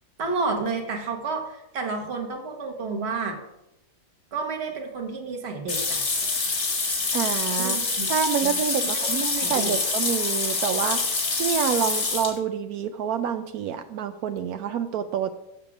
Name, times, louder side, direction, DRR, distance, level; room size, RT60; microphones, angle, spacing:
voice 1, 0.2-3.4 4.3-6.0 7.6-8.1 8.4-8.5 8.8-9.8, right 4 dB, 45° right, 2 dB, 1.5 m, -30 dB
sound 1, 5.7-12.4, left 4 dB, 80° left, 2.3 m, -26 dB
voice 2, 7.1-11.0 11.4-15.3, right 8 dB, 80° right, 8 dB, 1.0 m, -27 dB
7.3 x 6.8 x 6.0 m, 0.88 s
omnidirectional pair, 1.6 m